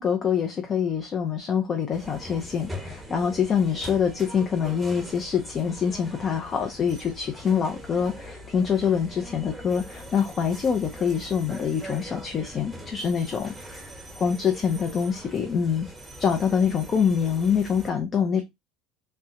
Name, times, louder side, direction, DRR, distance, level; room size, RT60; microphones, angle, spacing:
voice 1, 0.0-13.9 14.2-15.9 16.2-18.4, left 7 dB, 40° left, 0.6 m, -25 dB
sound 1, 1.9-17.9, equal, 5° right, 1.1 m, -42 dB
3.2 x 2.3 x 2.8 m
hypercardioid pair, 75°, 0 cm